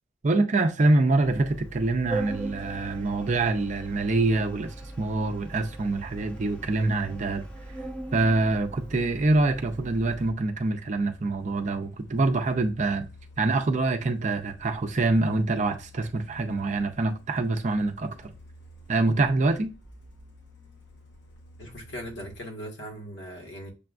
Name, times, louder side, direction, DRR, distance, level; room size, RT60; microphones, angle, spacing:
voice 1, 0.2-7.5 8.1-13.1 13.4-18.3 18.9-19.7, right 2 dB, 40° right, 0.5 m, -25 dB
Organ, 1.2-10.3, right 2 dB, 5° left, 0.5 m, -40 dB
Truck, 5.9-22.4, left 1 dB, 85° left, 1.0 m, -52 dB
voice 2, 21.6-23.7, equal, 70° left, 1.3 m, -39 dB
6.7 x 2.2 x 2.4 m
head